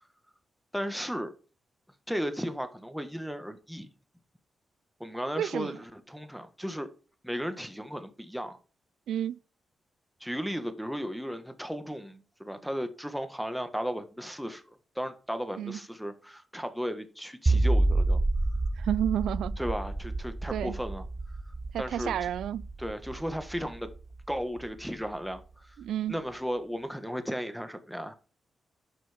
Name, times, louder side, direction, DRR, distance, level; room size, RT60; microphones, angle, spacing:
voice 1, 0.7-1.3 2.1-3.9 5.0-6.9 7.2-8.6 10.2-18.2 19.6-21.0 21.8-22.3 22.8-23.9 24.3-25.7 26.1-28.1, equal, ahead, 1.5 m, -35 dB
voice 2, 5.4-5.8 9.1-9.4 15.6-15.8 18.8-19.6 20.5-20.7 21.7-22.7 25.8-26.2, right 10 dB, 85° right, 0.3 m, -30 dB
sound 1, 17.5-24.7, right 2 dB, 20° right, 0.5 m, -29 dB
11.0 x 6.1 x 3.5 m
cardioid pair, 80°, 0 cm